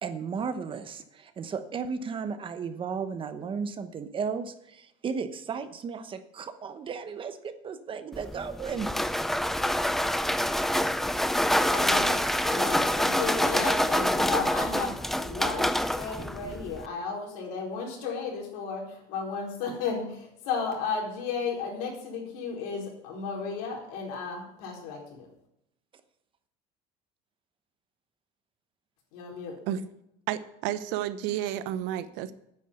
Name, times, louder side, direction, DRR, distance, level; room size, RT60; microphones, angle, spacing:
voice 1, 0.0-8.9, right 5 dB, 30° right, 10 dB, 1.0 m, -34 dB
sound 1, 8.1-16.9, equal, ahead, 0.4 m, -26 dB
voice 2, 11.7-25.3 29.1-29.6, left 5 dB, 85° left, -1 dB, 4.5 m, -34 dB
voice 3, 30.3-32.3, right 11 dB, 70° right, 13 dB, 1.0 m, -31 dB
9.5 x 8.4 x 8.3 m, 0.80 s
cardioid pair, 145°, 19 cm